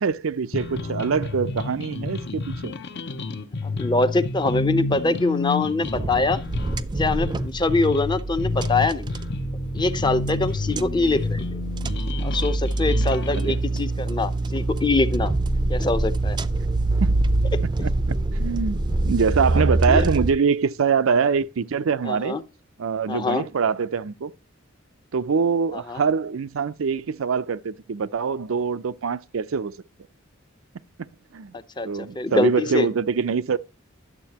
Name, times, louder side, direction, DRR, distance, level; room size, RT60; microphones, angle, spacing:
voice 1, 0.0-2.7 13.3-13.6 17.0-17.2 17.6-22.4 22.8-24.3 25.1-29.8 31.3-31.5 31.8-33.6, right 5 dB, 90° right, 0.5 m, -24 dB
sound 1, 0.5-13.5, left 3 dB, 60° left, 0.8 m, -30 dB
voice 2, 3.6-6.4 7.0-9.1 9.7-11.6 12.2-15.3 15.7-16.4 17.5-17.6 19.9-20.0 22.0-22.4 23.1-23.4 25.7-26.0 31.5-32.9, left 3 dB, 20° left, 0.6 m, -24 dB
sound 2, 5.8-20.3, right 2 dB, 20° right, 0.5 m, -25 dB
11.0 x 7.3 x 2.9 m
head